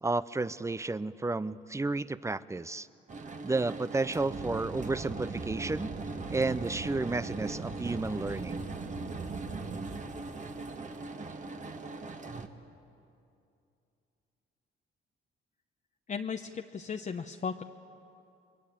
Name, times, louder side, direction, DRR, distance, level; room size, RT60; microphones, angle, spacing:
voice 1, 0.0-2.9 3.4-5.9 6.3-8.7, right 3 dB, 15° right, 16 dB, 0.6 m, -32 dB
sound 1, 3.1-12.5, right 3 dB, 40° right, 1.7 m, -39 dB
voice 2, 16.1-17.6, left 6 dB, 40° left, 4 dB, 0.9 m, -36 dB
29.5 x 22.0 x 8.7 m, 2.6 s
cardioid pair, 90°, 20 cm